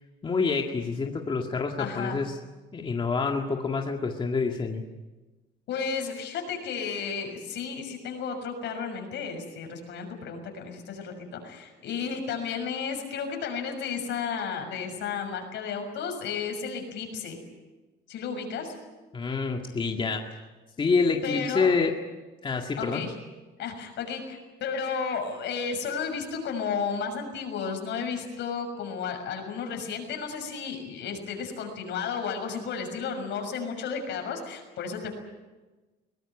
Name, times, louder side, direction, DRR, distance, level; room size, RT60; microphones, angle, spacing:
voice 1, 0.2-2.3 2.7-4.8 19.1-20.3 20.8-21.9 22.4-23.0, left 4 dB, 25° left, 2 dB, 1.9 m, -27 dB
voice 2, 1.8-2.2 5.7-17.4 18.1-18.7 21.2-21.7 22.8-23.1 23.6-35.1, left 6 dB, 70° left, 4 dB, 6.4 m, -33 dB
22.5 x 19.0 x 9.8 m, 1.2 s
cardioid pair, 125°, 19 cm